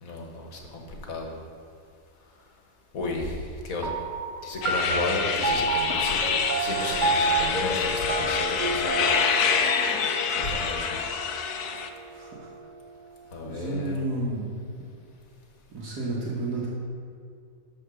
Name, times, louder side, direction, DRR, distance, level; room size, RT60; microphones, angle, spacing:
voice 1, 0.0-1.3 2.9-3.9 4.4-6.2 6.6-9.2 10.4-10.9 13.3-14.0, left 2 dB, 60° left, 1 dB, 1.6 m, -33 dB
sound 1, 3.8-12.6, right 3 dB, 40° right, 0.7 m, -30 dB
sound 2, 4.6-11.9, left 6 dB, 80° left, 1.2 m, -27 dB
voice 2, 12.1-12.5 13.4-14.5 15.7-16.7, right 2 dB, 80° right, -9 dB, 2.0 m, -31 dB
12.5 x 4.3 x 6.3 m, 2.3 s
omnidirectional pair, 1.6 m